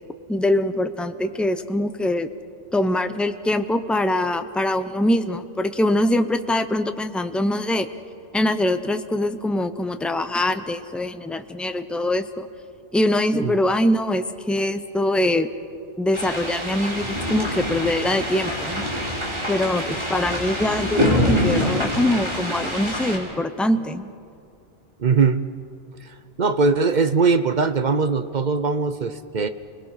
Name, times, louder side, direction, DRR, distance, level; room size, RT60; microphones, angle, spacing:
voice 1, 0.3-2.3 2.7-7.9 8.3-12.5 12.9-15.5 16.0-18.8 19.5-24.1, left 1 dB, ahead, 9 dB, 0.5 m, -23 dB
sound 1, 16.1-23.2, equal, 25° right, 3.5 m, -25 dB
voice 2, 25.0-25.5 26.0-29.5, right 4 dB, 45° right, 11 dB, 0.7 m, -21 dB
28.5 x 20.0 x 5.6 m, 2.4 s
omnidirectional pair, 1.2 m